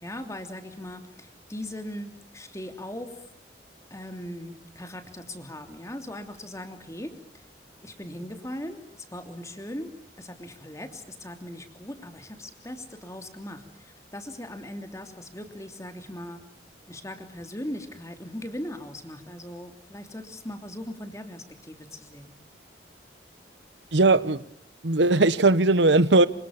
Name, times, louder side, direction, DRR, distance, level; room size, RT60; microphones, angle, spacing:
voice 1, 0.0-3.1 3.9-7.1 7.8-9.9 10.2-16.4 16.9-22.3, left 1 dB, 15° left, 3.0 m, -39 dB
voice 2, 23.9-24.4 24.8-26.3, right 2 dB, 85° right, 1.1 m, -19 dB
27.0 x 26.0 x 7.2 m
head